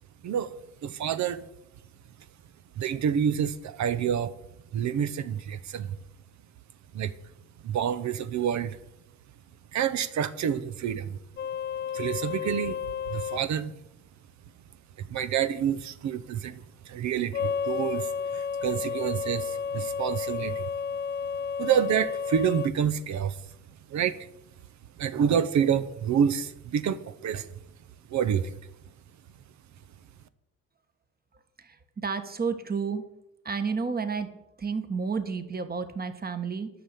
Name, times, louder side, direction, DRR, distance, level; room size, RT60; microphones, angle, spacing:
voice 1, 0.2-0.5 0.8-1.4 2.8-4.3 4.7-6.0 6.9-7.1 7.6-8.8 9.7-11.2 11.9-12.8 13.1-13.7 15.0-20.7 21.6-23.4 23.9-24.2 25.0-27.5 28.1-28.5, right 8 dB, 70° right, 0.8 m, -28 dB
sound 1, 11.4-13.4 17.3-22.7, left 6 dB, 35° left, 0.4 m, -32 dB
voice 2, 31.6-33.0 33.4-36.7, right 5 dB, 30° right, 1.4 m, -31 dB
11.0 x 5.9 x 8.3 m
cardioid pair, 90°, 30 cm